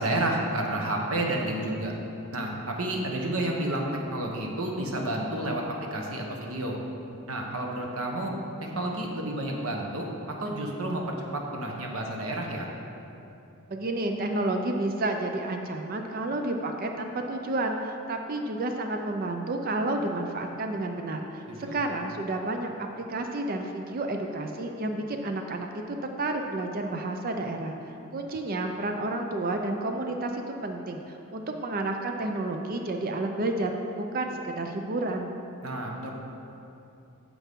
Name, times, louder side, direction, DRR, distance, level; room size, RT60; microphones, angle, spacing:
voice 1, 0.0-1.9 2.3-6.8 7.3-8.3 8.7-12.7 21.5-21.8 35.6-36.1, right 1 dB, 75° right, 0 dB, 1.2 m, -30 dB
voice 2, 13.7-21.4 21.7-27.8 28.1-35.3, right 2 dB, 40° right, 4 dB, 0.5 m, -30 dB
9.9 x 7.0 x 3.6 m, 2.8 s
head